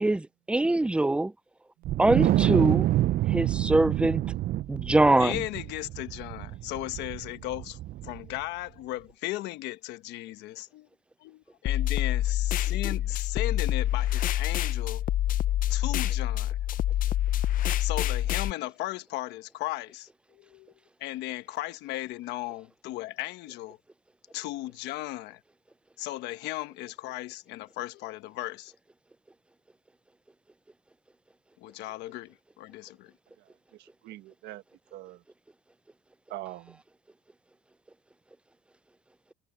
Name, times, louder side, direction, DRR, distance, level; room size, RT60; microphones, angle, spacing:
voice 1, 0.0-1.3 2.0-2.9 3.3-4.2 4.7-5.3, right 2 dB, 5° right, 0.4 m, -23 dB
Wind, 1.9-8.4, right 14 dB, 60° right, 0.5 m, -27 dB
voice 2, 5.2-10.9 11.2-15.0 15.7-16.6 17.8-20.7 21.0-23.8 24.3-25.4 26.0-28.7 31.6-33.1, left 17 dB, 90° left, 1.2 m, -36 dB
sound 1, 11.7-18.5, left 12 dB, 55° left, 0.5 m, -27 dB
voice 3, 33.4-34.6 34.9-35.2 36.3-36.8, right 16 dB, 85° right, 1.3 m, -44 dB
cardioid pair, 110°, 17 cm